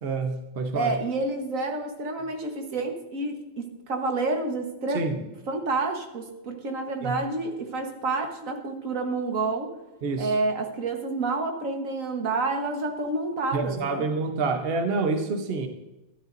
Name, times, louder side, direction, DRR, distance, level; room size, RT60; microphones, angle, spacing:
voice 1, 0.0-1.0 4.9-5.2 7.0-7.2 10.0-10.3 13.5-15.7, right 3 dB, 75° right, 6 dB, 0.5 m, -27 dB
voice 2, 0.7-9.7 10.2-14.0, right 3 dB, 45° right, 4 dB, 1.4 m, -29 dB
13.0 x 12.0 x 2.6 m, 0.97 s
omnidirectional pair, 2.3 m